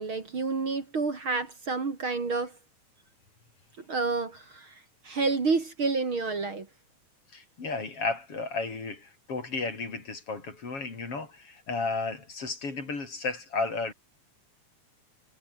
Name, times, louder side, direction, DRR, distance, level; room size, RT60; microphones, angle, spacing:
voice 1, 0.0-2.6 3.9-6.7, right 4 dB, 45° right, 3.5 m, -29 dB
voice 2, 7.3-13.9, left 3 dB, 45° left, 5.3 m, -33 dB
omnidirectional pair, 3.5 m